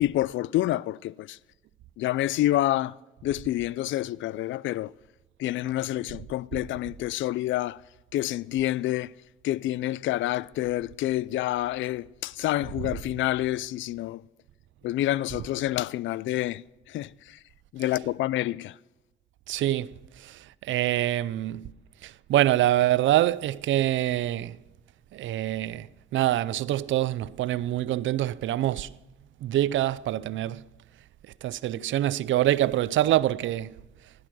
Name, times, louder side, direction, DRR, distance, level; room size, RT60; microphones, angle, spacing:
voice 1, 0.0-1.4 2.0-3.0 3.2-4.9 5.4-7.8 8.1-9.1 9.4-14.2 14.8-17.4 17.7-18.8, left 15 dB, 75° left, 0.4 m, -28 dB
voice 2, 19.5-21.7 22.0-24.6 25.1-28.9 29.4-30.6 31.4-33.7, right 13 dB, 75° right, 0.5 m, -25 dB
16.5 x 12.0 x 6.2 m
cardioid pair, 90°, 20 cm